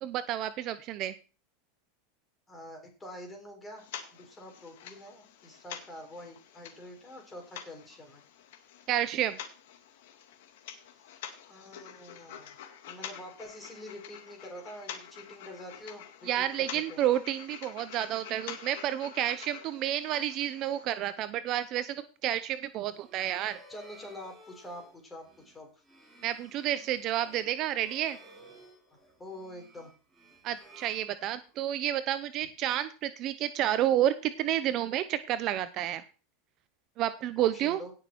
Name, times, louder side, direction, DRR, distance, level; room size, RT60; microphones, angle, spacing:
voice 1, 0.0-1.1 8.9-9.4 16.3-22.0 22.2-23.6 26.2-28.2 30.4-36.0 37.0-37.8, right 12 dB, 40° right, 12 dB, 0.6 m, -30 dB
voice 2, 2.5-8.2 11.5-12.6 12.9-17.0 23.7-25.7 29.2-29.9 37.4-37.9, left 1 dB, 15° left, 2 dB, 4.2 m, -46 dB
sound 1, 3.8-20.9, left 9 dB, 75° left, 2.1 m, -47 dB
sound 2, 22.7-31.8, right 2 dB, 5° right, 3.0 m, -56 dB
17.5 x 6.2 x 4.5 m, 0.36 s
supercardioid pair, 145°, 0 cm